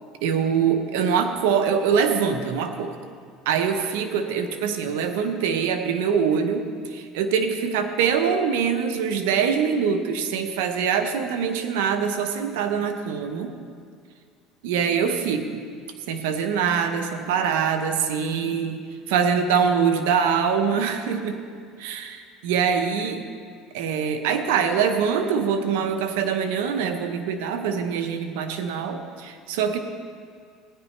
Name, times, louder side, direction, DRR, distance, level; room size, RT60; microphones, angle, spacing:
voice 1, 0.2-3.0 3.5-13.5 14.6-15.5 16.1-21.4 21.8-23.2 23.7-29.8, right 6 dB, 85° right, 7 dB, 0.9 m, -24 dB
16.0 x 10.5 x 3.3 m, 2.1 s
supercardioid pair, 105°, 0 cm